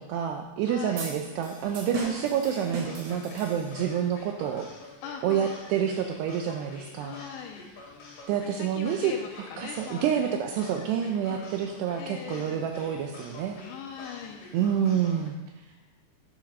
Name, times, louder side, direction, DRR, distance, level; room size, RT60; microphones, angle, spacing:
voice 1, 0.0-4.7 5.2-7.2 8.3-9.1 9.4-13.6 14.5-15.4, right 8 dB, 85° right, 4 dB, 2.4 m, -28 dB
voice 2, 0.6-1.0 5.0-5.6 7.0-7.7 8.6-10.2 11.2-11.6 12.0-12.7 13.6-14.5 15.7-15.8, left 7 dB, 80° left, 3 dB, 2.9 m, -41 dB
sound 1, 1.0-4.0, right 3 dB, 60° right, 3.5 m, -38 dB
sound 2, 1.6-15.3, left 3 dB, 55° left, 3.2 m, -47 dB
10.0 x 7.4 x 5.3 m, 1.1 s
omnidirectional pair, 5.5 m